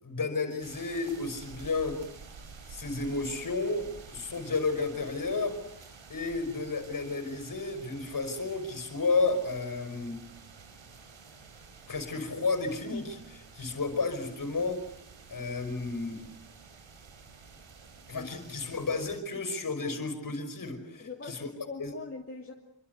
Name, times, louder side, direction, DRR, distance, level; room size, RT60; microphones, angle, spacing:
voice 1, 0.0-2.0 2.7-5.6 6.1-10.2 11.9-14.8 15.3-16.3 18.1-21.5 21.8-21.9, left 3 dB, 45° left, 9 dB, 5.4 m, -32 dB
sound 1, 0.6-19.2, right 5 dB, 85° right, 3.7 m, -51 dB
voice 2, 21.0-22.5, left 4 dB, 30° left, -1 dB, 2.7 m, -42 dB
27.5 x 25.0 x 8.2 m, 0.70 s
wide cardioid pair, 175°, 45 cm